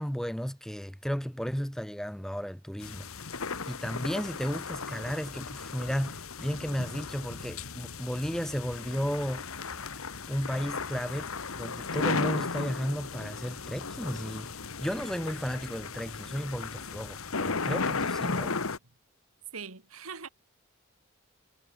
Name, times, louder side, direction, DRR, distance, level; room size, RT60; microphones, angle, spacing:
voice 1, 0.0-3.1 3.6-9.4 10.3-14.5 14.8-18.6, equal, ahead, 1.1 m, -34 dB
sound 1, 2.8-18.8, left 4 dB, 80° left, 1.6 m, -35 dB
voice 2, 19.5-20.3, right 5 dB, 85° right, 2.1 m, -41 dB
head